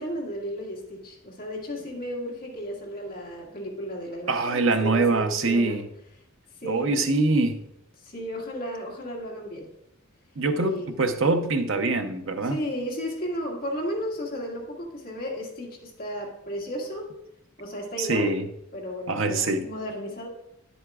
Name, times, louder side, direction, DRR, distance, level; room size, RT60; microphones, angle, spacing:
voice 1, 0.0-5.8 6.6-7.0 8.0-9.7 10.5-10.9 12.4-17.1 17.6-18.3 18.7-20.3, equal, 45° left, -2 dB, 1.9 m, -34 dB
voice 2, 4.3-5.9 6.6-7.6 10.4-12.6 18.0-18.4 19.1-19.7, right 3 dB, 65° right, 7 dB, 0.7 m, -24 dB
9.7 x 7.9 x 2.4 m, 0.80 s
head